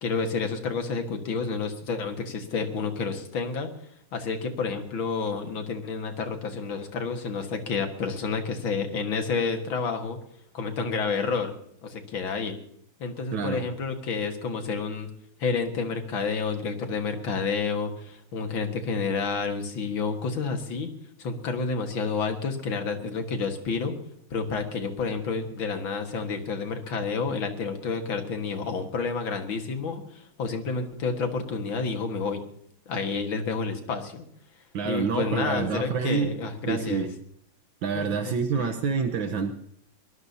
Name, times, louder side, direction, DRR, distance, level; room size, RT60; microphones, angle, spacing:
voice 1, 0.0-3.7 4.1-10.2 10.5-11.5 11.8-12.6 13.0-15.1 15.4-20.9 21.2-23.9 24.3-32.4 32.9-34.3 34.8-37.1 38.0-38.7, left 4 dB, 70° left, 5 dB, 2.5 m, -30 dB
voice 2, 13.3-13.6 34.7-36.3 36.7-37.1 37.8-39.5, right 5 dB, 70° right, 7 dB, 1.8 m, -27 dB
24.0 x 19.0 x 2.8 m, 0.67 s
omnidirectional pair, 2.3 m